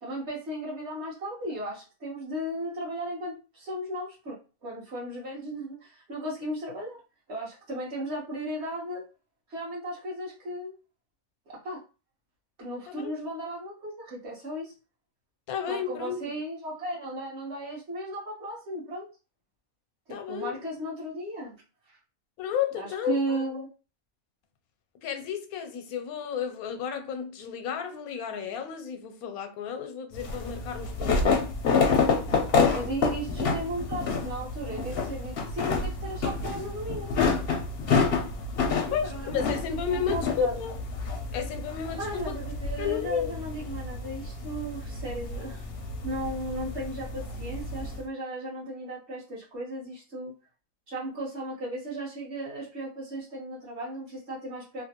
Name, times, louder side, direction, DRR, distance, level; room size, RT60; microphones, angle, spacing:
voice 1, 0.0-7.0 7.3-9.0 9.5-10.7 11.5-11.8 12.6-14.7 15.7-19.1 20.1-21.6 22.7-23.7 32.7-37.2 38.7-40.6 42.0-45.7 46.0-50.3 50.9-54.8, right 1 dB, 50° right, 1.4 m, -36 dB
voice 2, 15.5-16.2 20.1-20.5 22.4-23.4 25.0-31.4 38.9-40.7 41.3-42.4 42.8-43.3, left 7 dB, 90° left, 1.1 m, -32 dB
sound 1, 30.1-48.0, left 4 dB, 60° left, 0.7 m, -29 dB
3.1 x 2.1 x 2.8 m
omnidirectional pair, 1.5 m